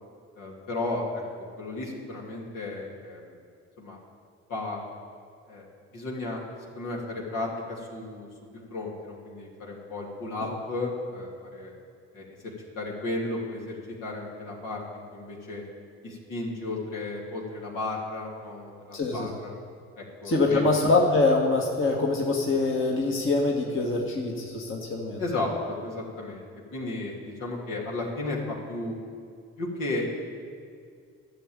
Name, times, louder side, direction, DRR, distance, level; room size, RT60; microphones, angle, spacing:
voice 1, 0.4-3.4 3.8-4.0 4.5-4.8 5.5-5.7 5.9-6.4 6.7-8.3 8.7-11.7 12.1-12.3 12.7-13.7 14.0-14.8 15.1-15.6 16.0-19.5 20.0-20.6 25.2-26.5 26.7-29.0 29.6-30.2, left 2 dB, 65° left, -3 dB, 2.9 m, -34 dB
voice 2, 18.9-19.4 20.2-25.2, left 3 dB, 35° left, -1 dB, 1.8 m, -24 dB
11.5 x 7.1 x 9.0 m, 2.3 s
hypercardioid pair, 50°, 35 cm